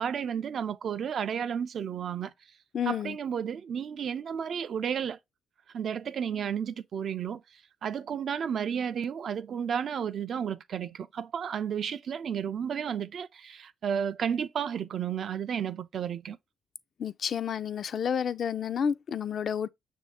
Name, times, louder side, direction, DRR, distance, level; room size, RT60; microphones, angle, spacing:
voice 1, 0.0-2.3 2.9-5.2 5.7-7.4 7.8-16.4, right 8 dB, 60° right, 0.4 m, -32 dB
voice 2, 2.7-3.2 17.0-19.7, left 7 dB, 55° left, 0.3 m, -30 dB
6.2 x 2.6 x 3.3 m
cardioid pair, 90°, 0 cm